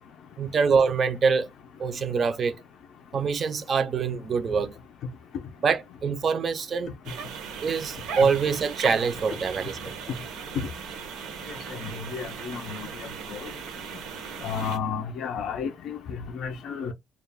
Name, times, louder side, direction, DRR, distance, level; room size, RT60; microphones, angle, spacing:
voice 1, 0.4-1.5 1.8-2.5 3.1-4.8 5.6-6.9 7.6-10.0, right 5 dB, 30° right, 0.3 m, -25 dB
sound 1, 7.0-14.8, right 7 dB, 80° right, 0.6 m, -38 dB
voice 2, 11.8-12.9 13.3-13.5 14.4-16.9, left 6 dB, 55° left, 0.4 m, -32 dB
2.3 x 2.1 x 3.3 m
cardioid pair, 175°, 0 cm